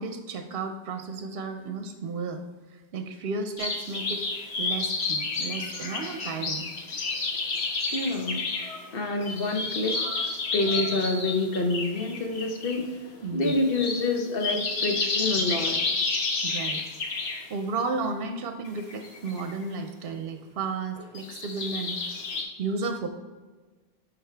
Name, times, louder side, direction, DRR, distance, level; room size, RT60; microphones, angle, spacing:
voice 1, 0.0-2.4 2.7-4.2 4.6-6.7 13.2-13.5 16.4-16.8 17.5-22.0 22.6-23.1, right 4 dB, 70° right, 6 dB, 0.8 m, -33 dB
sound 1, 3.6-8.9 9.2-12.9 13.1-17.4 18.7-19.6 21.0-22.4, left 3 dB, 85° left, 1.2 m, -30 dB
voice 2, 7.9-8.4 8.9-10.0 10.5-12.9 13.3-15.8, left 2 dB, 65° left, 3 dB, 1.2 m, -27 dB
10.5 x 3.9 x 3.4 m, 1.3 s
omnidirectional pair, 1.0 m